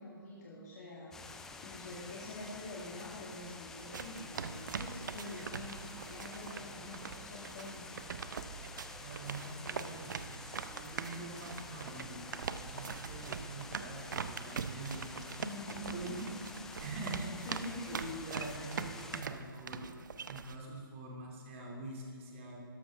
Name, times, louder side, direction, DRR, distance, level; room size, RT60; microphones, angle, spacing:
voice 1, 0.0-7.9 15.4-16.4 17.4-18.1, left 2 dB, 45° left, -5 dB, 2.1 m, -46 dB
sound 1, 1.1-19.2, left 3 dB, 5° left, 0.3 m, -49 dB
sound 2, 3.8-20.6, right 6 dB, 55° right, 0.6 m, -43 dB
voice 2, 9.0-12.3 12.6-15.1 15.9-16.2 16.8-22.6, right 2 dB, 35° right, -1 dB, 2.3 m, -45 dB
12.5 x 11.5 x 3.4 m, 2.4 s
figure-of-eight pair, 140°, 12 cm